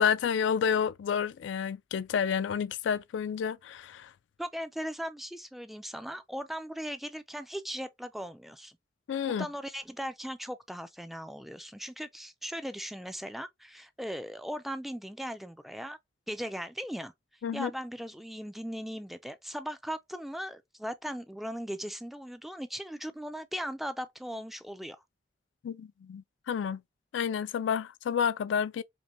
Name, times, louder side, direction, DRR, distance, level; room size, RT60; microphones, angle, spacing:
voice 1, 0.0-4.1 9.1-9.5 17.4-17.7 25.6-26.8 27.1-28.8, left 7 dB, 80° left, 0.3 m, -30 dB
voice 2, 4.4-8.8 9.3-16.0 16.3-17.1 17.5-25.0, equal, ahead, 0.3 m, -38 dB
5.2 x 2.1 x 2.9 m
head